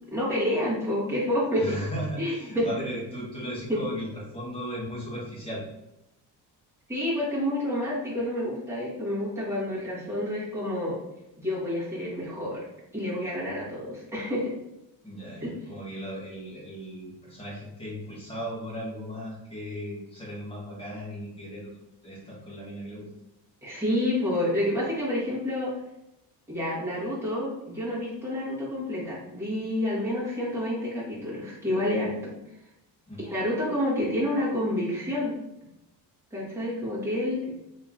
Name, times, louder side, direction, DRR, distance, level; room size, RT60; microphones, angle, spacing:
voice 1, 0.1-1.8 2.2-2.7 3.7-3.8 6.9-11.0 11.4-12.6 12.9-14.5 15.4-15.5 23.6-25.7 26.5-32.4 33.2-35.3 36.3-37.5, left 1 dB, 5° right, -9 dB, 1.4 m, -29 dB
voice 2, 1.6-5.6 15.0-21.7 22.0-23.1 33.1-33.3, equal, 15° left, -5 dB, 1.1 m, -36 dB
3.0 x 2.8 x 3.7 m, 0.89 s
cardioid pair, 170°, 41 cm